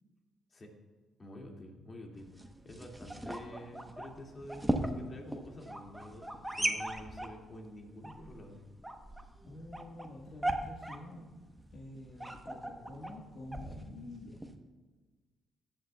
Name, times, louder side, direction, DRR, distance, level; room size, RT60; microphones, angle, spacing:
voice 1, 1.2-8.6, left 1 dB, 35° left, 0 dB, 2.1 m, -48 dB
sound 1, 2.2-14.6, right 1 dB, 5° right, 0.9 m, -39 dB
voice 2, 9.5-11.4 11.7-14.5, left 1 dB, 55° left, -2 dB, 1.4 m, -48 dB
15.5 x 9.1 x 2.3 m, 1.4 s
cardioid pair, 90°, 0 cm